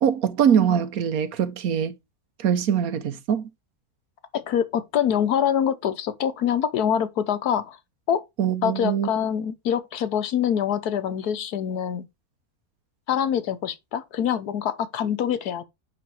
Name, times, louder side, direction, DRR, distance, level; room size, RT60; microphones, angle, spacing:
voice 1, 0.0-1.9 2.4-3.5 8.4-9.1, right 8 dB, 70° right, 1.3 m, -22 dB
voice 2, 4.3-7.8 8.1-8.2 8.6-12.1 13.1-15.6, left 9 dB, 85° left, 1.5 m, -25 dB
9.6 x 3.9 x 4.7 m
omnidirectional pair, 1.6 m